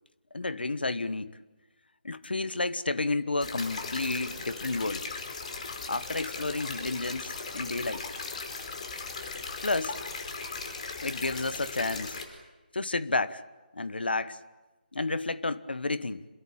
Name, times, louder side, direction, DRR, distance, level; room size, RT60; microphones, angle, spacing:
voice 1, 0.3-1.4 2.0-5.1 5.9-8.1 9.6-10.0 11.0-12.2 12.7-13.4 13.7-14.4 14.9-16.3, left 3 dB, 85° left, 1.3 m, -31 dB
sound 1, 3.4-12.2, left 4 dB, 45° left, 4.9 m, -38 dB
27.5 x 22.0 x 8.8 m
figure-of-eight pair, 160°, 5 cm